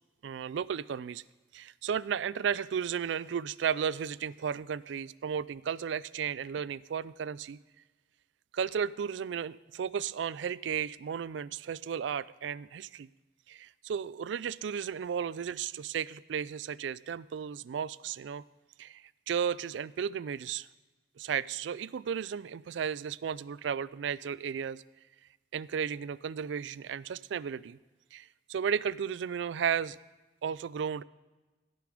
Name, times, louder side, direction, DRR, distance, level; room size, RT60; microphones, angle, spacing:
voice 1, 0.2-1.2 1.5-7.6 8.5-13.1 13.5-18.4 18.8-20.7 21.2-24.8 25.5-27.8 28.1-30.0 30.4-31.0, right 7 dB, 70° right, 19 dB, 0.3 m, -34 dB
16.5 x 6.8 x 4.9 m, 1.2 s
head